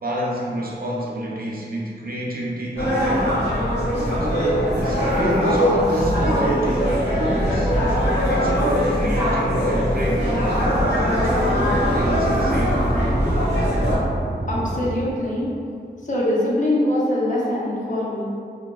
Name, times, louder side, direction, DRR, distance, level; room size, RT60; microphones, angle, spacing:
voice 1, 0.0-3.3 4.2-6.8 7.1-7.7 8.3-10.6 11.2-12.8, right 1 dB, 55° right, -4 dB, 0.4 m, -28 dB
sound 1, 2.8-14.0, equal, 75° left, 1.2 m, -21 dB
sound 2, 9.0-14.9, right 1 dB, ahead, 0.7 m, -30 dB
voice 2, 14.5-15.5 16.0-18.2, left 1 dB, 45° left, -6 dB, 0.6 m, -23 dB
2.7 x 2.3 x 2.2 m, 2.3 s
wide cardioid pair, 70°, 19 cm